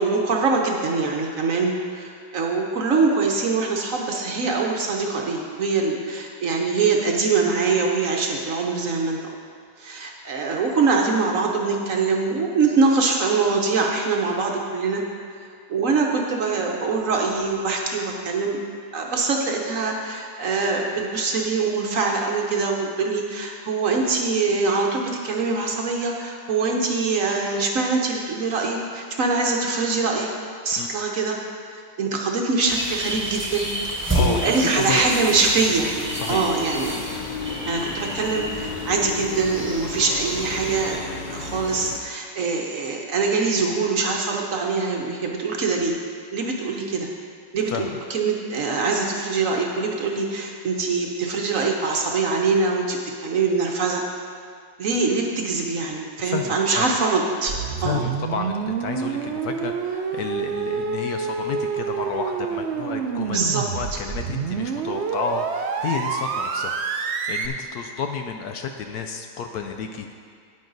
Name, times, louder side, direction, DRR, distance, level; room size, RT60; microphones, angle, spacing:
voice 1, 0.0-9.2 9.8-15.0 15.7-18.6 18.9-30.3 30.6-31.4 31.7-33.7 34.2-36.0 36.3-37.0 37.7-41.0 41.3-46.0 46.3-47.1 47.5-54.0 54.8-58.0 63.3-63.6 63.9-64.0, right 4 dB, 55° right, 1 dB, 1.1 m, -23 dB
sound 1, 32.7-41.0, right 1 dB, 10° right, 0.9 m, -30 dB
sound 2, 34.1-42.0, left 4 dB, 90° left, 0.4 m, -35 dB
voice 2, 34.1-35.0 36.1-36.5 47.7-48.0 56.2-57.0 57.8-70.1, left 6 dB, 70° left, 5 dB, 1.0 m, -31 dB
sound 3, 57.5-67.5, right 6 dB, 90° right, 0.5 m, -28 dB
9.5 x 9.4 x 3.9 m, 2.2 s
omnidirectional pair, 1.9 m